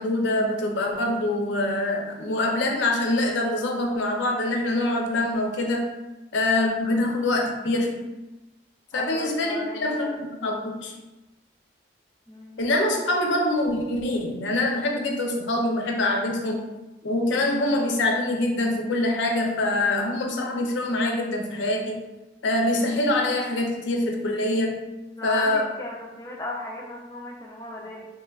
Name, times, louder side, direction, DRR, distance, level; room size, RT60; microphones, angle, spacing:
voice 1, 0.0-5.9 6.3-8.1 8.9-10.9 12.6-16.7 17.0-22.0 22.4-24.9 25.2-25.7, left 2 dB, 75° left, 1 dB, 0.5 m, -24 dB
voice 2, 8.9-10.2 12.3-12.6 25.2-28.1, left 1 dB, 15° left, -2 dB, 0.4 m, -36 dB
3.0 x 2.2 x 2.3 m, 1.0 s
head